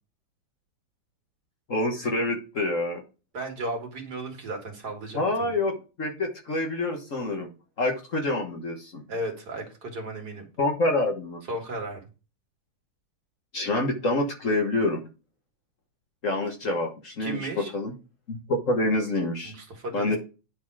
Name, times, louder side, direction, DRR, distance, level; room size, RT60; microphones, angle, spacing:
voice 1, 1.7-3.0 5.1-7.5 7.8-9.0 10.6-11.4 13.5-15.0 16.2-17.9 18.3-19.5 19.9-20.2, left 2 dB, 45° left, 2 dB, 1.5 m, -27 dB
voice 2, 3.3-5.6 9.1-10.4 11.5-12.0 17.2-17.7 19.4-20.2, right 2 dB, 55° right, 2 dB, 2.5 m, -35 dB
9.9 x 4.1 x 4.7 m, 0.32 s
omnidirectional pair, 2.1 m